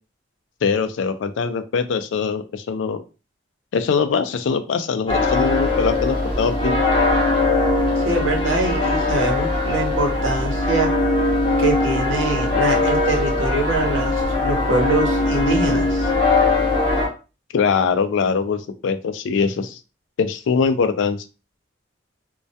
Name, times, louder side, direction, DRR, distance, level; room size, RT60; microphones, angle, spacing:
voice 1, 0.6-3.0 3.7-6.8 17.5-19.8 20.2-21.2, left 5 dB, 75° left, 10 dB, 0.3 m, -22 dB
sound 1, 5.1-17.1, left 2 dB, 25° left, 0.6 m, -20 dB
voice 2, 8.0-10.9 11.6-16.1, right 2 dB, 85° right, 1 dB, 0.8 m, -24 dB
2.2 x 2.1 x 2.6 m, 0.32 s
head